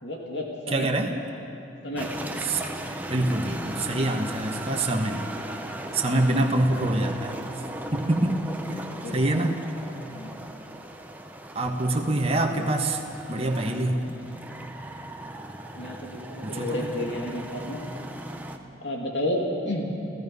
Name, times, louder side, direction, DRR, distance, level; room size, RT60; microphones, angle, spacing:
voice 1, 0.0-0.9 1.8-2.1 8.9-9.2 10.1-10.3 13.8-14.1 15.8-17.8 18.8-19.9, left 1 dB, 65° left, -1 dB, 2.6 m, -31 dB
voice 2, 0.7-1.1 2.4-5.3 5.9-7.4 7.9-9.6 11.5-13.0 13.3-14.0 16.4-16.9, right 1 dB, 30° right, 2 dB, 1.5 m, -26 dB
sound 1, 2.0-18.6, right 1 dB, 10° right, 1.0 m, -37 dB
29.5 x 16.5 x 5.5 m, 2.9 s
head